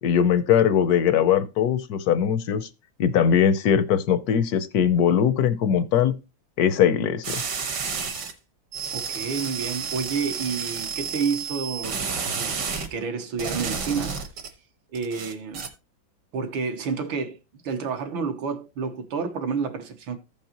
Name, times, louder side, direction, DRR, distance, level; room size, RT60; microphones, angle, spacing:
voice 1, 0.0-2.7 3.0-6.1 6.6-7.4, left 8 dB, 70° left, 0.9 m, -21 dB
sound 1, 7.2-8.3 8.7-12.9 13.4-14.5 14.9-15.7, right 5 dB, 60° right, 1.8 m, -31 dB
voice 2, 8.9-12.6 12.9-14.2 14.9-15.7 16.3-20.2, right 5 dB, 80° right, 1.8 m, -29 dB
15.0 x 5.4 x 2.9 m
omnidirectional pair, 2.1 m